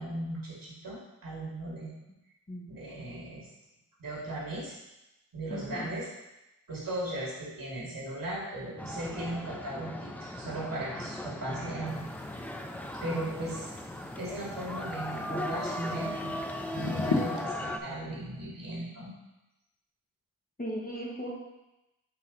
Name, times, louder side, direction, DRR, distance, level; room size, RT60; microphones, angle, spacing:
voice 1, 0.0-1.9 2.7-3.5 4.0-4.8 5.3-6.1 6.7-12.1 13.0-13.7 14.2-16.3 16.7-19.1, right 1 dB, 70° right, -6 dB, 2.5 m, -37 dB
voice 2, 5.5-5.9 20.6-21.3, equal, 25° left, -4 dB, 1.6 m, -37 dB
sound 1, 8.8-17.8, left 1 dB, 5° left, 0.3 m, -38 dB
sound 2, 11.9-17.4, left 3 dB, 55° left, 1.1 m, -38 dB
7.6 x 4.1 x 4.0 m, 0.96 s
wide cardioid pair, 115°, 35 cm